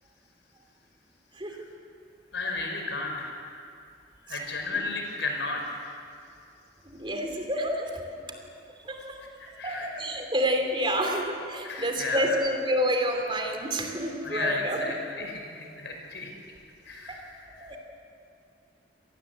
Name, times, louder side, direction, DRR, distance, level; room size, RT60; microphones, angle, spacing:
voice 1, 2.3-3.7 4.3-5.8 9.3-10.0 11.6-12.4 14.2-16.3 16.8-17.8, left 3 dB, 85° left, 2 dB, 5.3 m, -34 dB
voice 2, 6.9-8.0 8.9-9.2 9.6-14.8 17.6-17.8, equal, 30° right, 4 dB, 2.8 m, -28 dB
27.0 x 18.5 x 8.1 m, 2.4 s
head